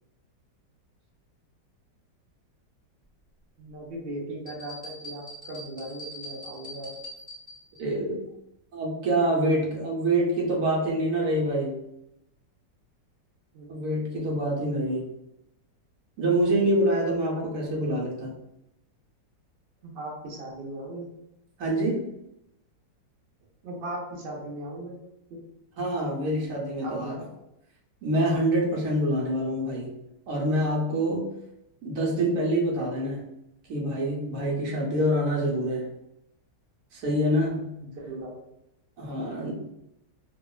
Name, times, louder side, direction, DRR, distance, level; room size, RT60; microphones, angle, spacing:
voice 1, 3.6-6.9 13.5-13.8 17.4-17.5 19.8-21.1 23.6-24.9 25.3-25.4 26.8-27.2 37.8-38.3 39.4-39.5, right 1 dB, 80° right, -2 dB, 0.5 m, -38 dB
sound 1, 4.5-7.8, equal, 5° left, 0.6 m, -42 dB
voice 2, 7.8-8.2 8.7-11.8 13.7-15.1 16.2-18.3 21.6-22.1 25.8-27.3 28.0-29.9 30.3-31.3 31.8-33.2 33.7-35.9 36.9-37.7 39.0-39.5, right 1 dB, 60° right, -3 dB, 0.9 m, -26 dB
2.9 x 2.3 x 2.3 m, 0.84 s
omnidirectional pair, 2.0 m